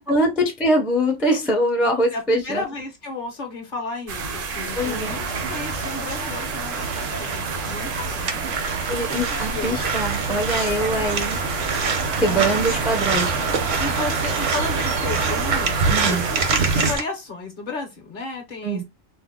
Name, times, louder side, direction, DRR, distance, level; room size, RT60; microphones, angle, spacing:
voice 1, 0.1-2.6 4.8-5.1 8.9-11.4 12.2-13.4 15.9-16.2 18.6-18.8, equal, ahead, 0.3 m, -23 dB
voice 2, 1.8-8.5 9.3-9.8 10.9-11.2 11.5-11.6 12.1-12.6 13.8-18.8, left 3 dB, 50° left, 0.7 m, -33 dB
sound 1, 4.1-17.0, right 4 dB, 60° right, 0.6 m, -30 dB
sound 2, 4.8-17.0, right 4 dB, 75° right, 1.1 m, -25 dB
2.5 x 2.1 x 3.5 m
omnidirectional pair, 1.3 m